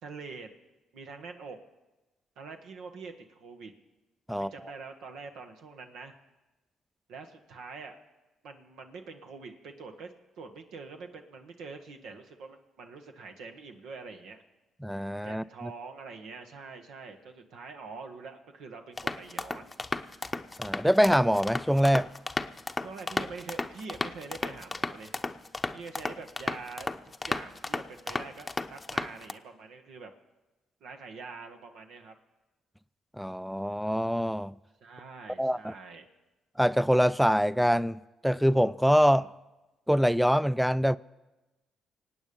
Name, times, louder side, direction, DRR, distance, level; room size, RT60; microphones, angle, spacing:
voice 1, 0.0-0.5 0.9-1.6 2.4-3.7 4.3-6.1 7.1-7.9 8.4-10.1 10.4-14.4 15.2-19.8 22.8-25.1 25.7-26.9 27.3-30.1 30.8-32.1 34.8-36.1 39.1-39.3, right 4 dB, 70° right, 1.3 m, -45 dB
voice 2, 14.8-15.7 20.6-22.1 33.2-34.5 35.4-35.7 36.6-39.2 39.9-41.0, equal, ahead, 0.4 m, -24 dB
sound 1, 19.0-29.3, left 3 dB, 25° left, 0.8 m, -34 dB
25.5 x 8.9 x 5.3 m
hypercardioid pair, 50°, 0 cm